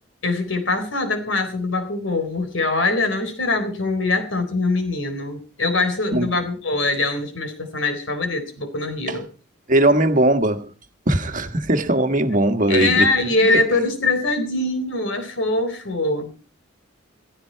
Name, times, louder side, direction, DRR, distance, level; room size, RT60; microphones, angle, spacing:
voice 1, 0.2-9.3 12.7-16.3, left 2 dB, 70° left, 3.9 m, -23 dB
voice 2, 9.7-10.7 11.1-13.1 13.5-13.7, right 1 dB, 40° right, 1.5 m, -19 dB
16.5 x 15.5 x 4.6 m
head